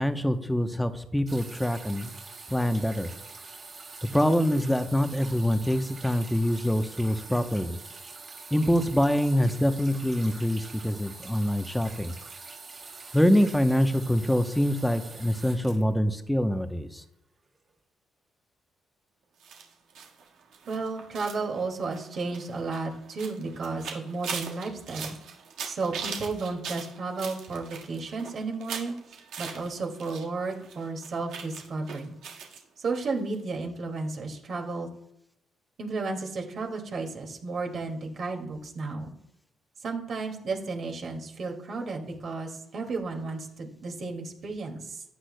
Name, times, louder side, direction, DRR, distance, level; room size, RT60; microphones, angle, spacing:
voice 1, 0.0-2.1 2.5-3.1 4.1-7.8 8.5-12.1 13.1-17.0, equal, 5° left, 8 dB, 0.8 m, -25 dB
sound 1, 1.3-16.6 17.5-17.6, right 4 dB, 40° right, 2.6 m, -45 dB
sound 2, 19.4-30.2 30.5-32.6 32.9-33.1 33.3-33.4, right 6 dB, 80° right, 1.6 m, -40 dB
voice 2, 20.7-25.2 25.6-28.9 29.4-32.2 32.8-34.9 35.8-39.1 39.8-45.0, right 3 dB, 55° right, 2 dB, 2.2 m, -33 dB
14.0 x 9.8 x 2.2 m, 0.78 s
cardioid pair, 90°, 0 cm